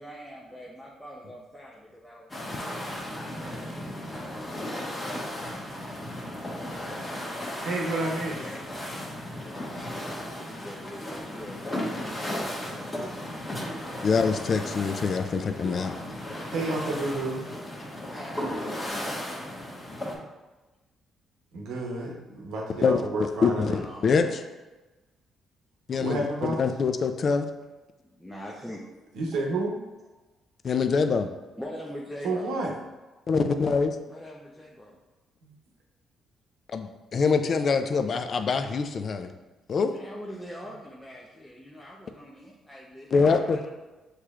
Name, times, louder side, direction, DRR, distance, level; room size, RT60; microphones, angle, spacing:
voice 1, 0.0-3.8 4.6-4.9 7.6-8.6 9.3-12.6 15.7-17.5 18.1-20.1 23.6-24.3 28.1-28.9 31.6-32.5 34.1-35.0 39.9-43.7, equal, 10° left, -4 dB, 0.6 m, -44 dB
sound 1, 2.3-20.1, left 1 dB, 25° left, 1.3 m, -35 dB
voice 2, 7.6-8.4 16.5-17.4 21.5-23.8 26.0-26.6 29.1-29.8 32.2-32.7 35.4-35.5, right 2 dB, 85° right, -1 dB, 0.9 m, -30 dB
voice 3, 14.0-15.9 22.8-23.0 23.4-24.4 25.9-27.5 30.6-31.3 33.3-34.0 36.7-39.3 39.7-39.9 43.1-43.7, left 5 dB, 50° left, 7 dB, 0.4 m, -24 dB
6.5 x 3.1 x 2.4 m, 1.2 s
cardioid pair, 90°, 0 cm